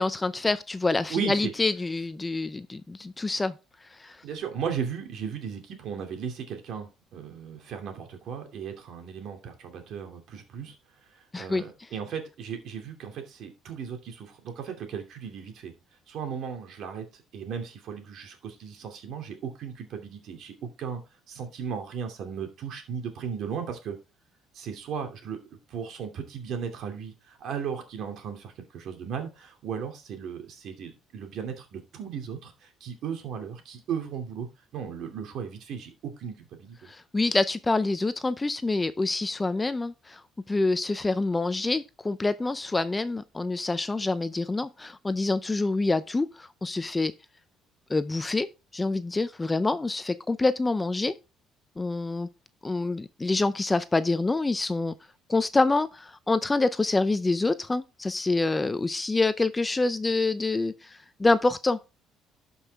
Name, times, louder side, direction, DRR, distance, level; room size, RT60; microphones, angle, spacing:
voice 1, 0.0-3.5 4.0-4.2 11.3-11.6 36.8-40.2 40.5-47.1 47.9-51.1 51.8-52.3 52.6-54.9 55.3-61.8, left 3 dB, 15° left, 0.5 m, -26 dB
voice 2, 1.1-1.5 4.2-10.8 11.1-15.7 16.1-21.0 21.3-24.0 24.5-25.4 25.7-34.5 34.7-36.9, right 7 dB, 65° right, 2.6 m, -36 dB
12.0 x 5.5 x 3.5 m
cardioid pair, 115°, 0 cm